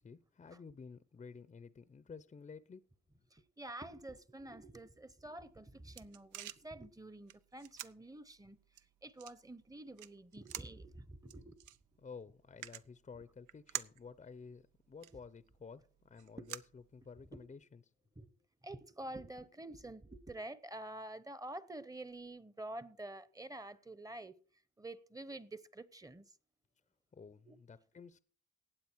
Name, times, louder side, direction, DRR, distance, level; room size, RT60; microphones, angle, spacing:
voice 1, 0.0-2.8 12.0-17.8 27.1-28.2, left 5 dB, 25° left, 0.6 m, -52 dB
voice 2, 3.3-11.6 13.1-13.2 16.4-16.5 17.3-17.6 18.2-18.3 18.6-24.3 24.8-26.3 27.5-27.6, right 1 dB, 10° right, 0.8 m, -48 dB
sound 1, 5.4-17.5, right 12 dB, 85° right, 0.7 m, -51 dB
15.5 x 8.8 x 4.6 m
cardioid pair, 90°, 30 cm